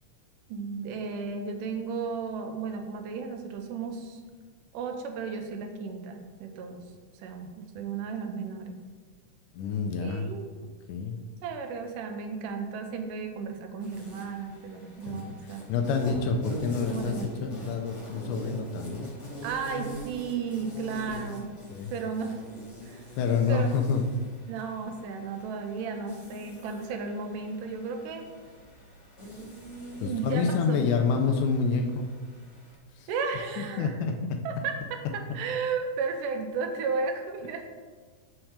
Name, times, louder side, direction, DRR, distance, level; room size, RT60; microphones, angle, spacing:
voice 1, 0.5-4.2 4.7-6.9 7.1-8.8 10.0-10.4 11.4-15.8 16.9-17.6 19.4-21.5 21.9-22.4 22.8-23.1 23.5-23.9 24.5-28.3 29.9-30.8 33.1-34.0 34.4-37.6, right 5 dB, 85° right, 5 dB, 2.3 m, -34 dB
voice 2, 9.6-10.3 10.9-11.2 15.1-15.3 15.7-17.1 17.4-19.1 21.7-21.9 23.2-24.0 30.0-32.1 33.0-33.1 33.6-34.4, left 5 dB, 80° left, 3 dB, 2.1 m, -27 dB
Insect, 13.8-32.8, right 1 dB, 30° left, 1.4 m, -42 dB
5.9 x 4.4 x 6.4 m, 1.4 s
omnidirectional pair, 3.7 m